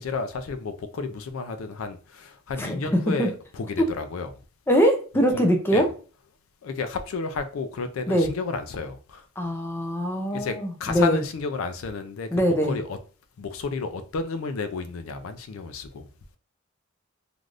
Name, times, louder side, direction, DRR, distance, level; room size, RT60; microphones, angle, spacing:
voice 1, 0.0-3.3 3.6-4.3 5.3-5.4 5.7-5.9 6.6-9.2 10.3-10.5 10.8-12.3 12.7-13.0 13.4-16.0, left 4 dB, 75° left, 8 dB, 0.4 m, -31 dB
voice 2, 2.6-3.3 3.8-3.9 4.7-5.9 8.1-8.3 9.4-11.2 12.3-12.8, equal, 10° left, 3 dB, 0.5 m, -22 dB
3.3 x 2.5 x 2.4 m, 0.37 s
head